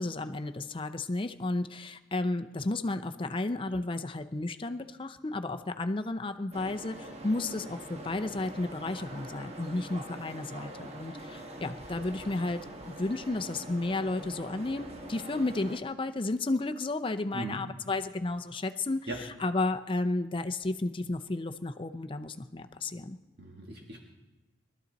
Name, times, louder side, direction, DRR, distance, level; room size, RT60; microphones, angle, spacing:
voice 1, 0.0-23.2, left 2 dB, 30° left, 8 dB, 0.6 m, -33 dB
sound 1, 6.5-15.8, right 1 dB, 35° right, 1.2 m, -44 dB
voice 2, 23.4-24.0, right 2 dB, 60° right, -1 dB, 1.8 m, -38 dB
22.0 x 13.0 x 4.1 m, 1.1 s
head